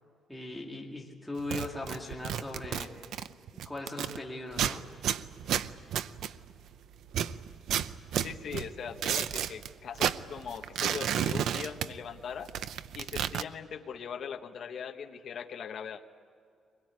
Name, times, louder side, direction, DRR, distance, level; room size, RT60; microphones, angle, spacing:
voice 1, 0.3-2.9 3.6-4.8, left 2 dB, 5° left, -3 dB, 2.2 m, -39 dB
sound 1, 1.4-4.2 4.5-6.7 7.1-9.7 10.0-12.2 12.5-13.4, right 9 dB, 75° right, 0.7 m, -32 dB
voice 2, 8.2-12.5 12.9-16.0, left 7 dB, 55° left, 5 dB, 1.3 m, -40 dB
23.5 x 21.5 x 9.7 m, 2.2 s
cardioid pair, 150°, 0 cm